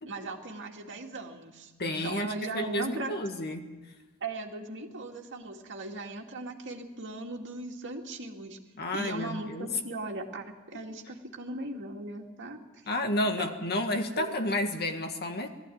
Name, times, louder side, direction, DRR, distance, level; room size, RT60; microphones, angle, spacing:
voice 1, 0.1-3.1 4.2-8.6 8.9-12.8 14.2-14.3, right 2 dB, 55° right, 2 dB, 2.2 m, -38 dB
voice 2, 1.8-3.7 8.8-9.7 12.9-15.5, left 1 dB, 45° left, 6 dB, 1.6 m, -31 dB
20.5 x 14.0 x 9.3 m, 1.2 s
head